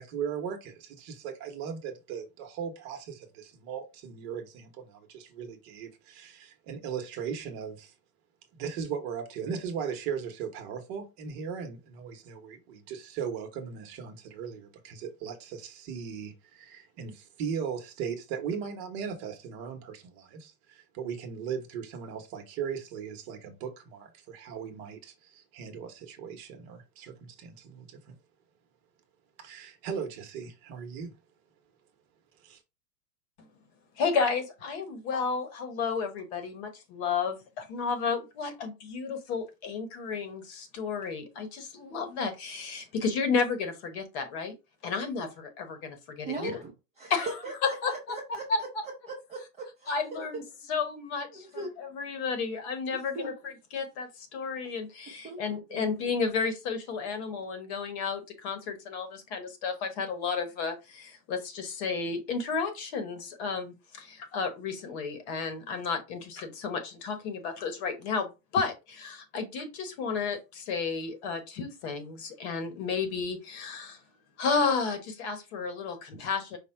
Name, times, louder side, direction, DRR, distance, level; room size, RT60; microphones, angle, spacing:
voice 1, 0.0-7.9 8.6-28.1 29.4-31.1 32.4-32.6, right 7 dB, 40° right, 1.0 m, -38 dB
voice 2, 34.0-44.5 44.8-46.5 47.1-47.3 47.6-48.2 48.5-48.6 49.9-50.4 50.7-51.5 51.8-53.3 53.7-74.0 74.4-76.6, left 5 dB, 45° left, 1.1 m, -32 dB
voice 3, 46.2-47.1 47.4-48.7 49.1-50.2 51.3-52.0 52.9-53.3 55.2-55.4 55.7-55.9, right 3 dB, 15° right, 0.7 m, -40 dB
5.2 x 2.2 x 4.3 m
supercardioid pair, 160°, 46 cm